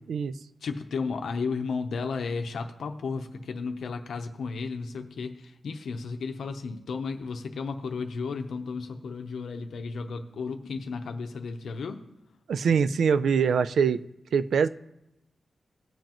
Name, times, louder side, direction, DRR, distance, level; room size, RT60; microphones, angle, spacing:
voice 1, 0.6-12.0, left 4 dB, 70° left, 6 dB, 0.7 m, -33 dB
voice 2, 12.5-14.0 14.3-14.7, right 6 dB, 75° right, 13 dB, 0.4 m, -23 dB
18.5 x 7.6 x 3.0 m, 0.84 s
wide cardioid pair, 180°, 0 cm